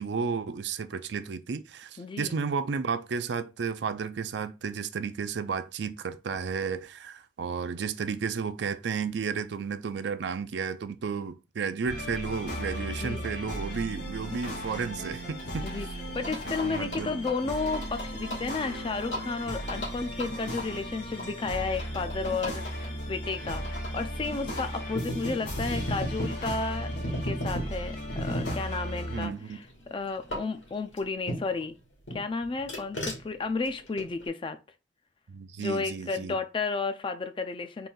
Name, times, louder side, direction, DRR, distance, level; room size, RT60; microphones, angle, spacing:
voice 1, 0.0-15.7 16.6-17.2 29.1-29.6 35.3-36.3, right 5 dB, 65° right, 0.4 m, -33 dB
voice 2, 2.0-2.4 12.9-13.3 15.6-15.9 16.1-29.3 29.9-31.8 32.1-34.6 35.6-37.9, left 4 dB, 25° left, 0.3 m, -32 dB
sound 1, 11.8-29.3, equal, 65° left, 1.7 m, -36 dB
sound 2, 15.4-31.7 32.1-34.3, equal, 85° left, 2.1 m, -38 dB
3.9 x 2.5 x 3.8 m
head